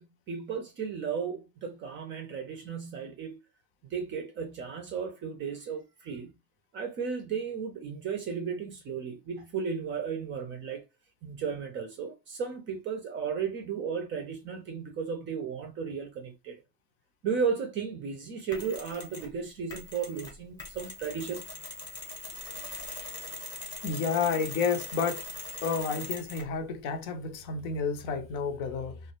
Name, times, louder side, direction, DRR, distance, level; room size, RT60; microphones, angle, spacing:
voice 1, 0.0-3.4 3.8-6.4 6.7-10.8 11.2-16.6 17.2-21.4, right 6 dB, 25° right, 0.5 m, -34 dB
Mechanisms, 18.5-19.3 19.7-26.6, left 2 dB, 10° left, 0.8 m, -41 dB
voice 2, 23.8-25.2 25.6-29.0, left 5 dB, 55° left, 0.6 m, -30 dB
2.2 x 2.1 x 2.9 m
hypercardioid pair, 115°, 48 cm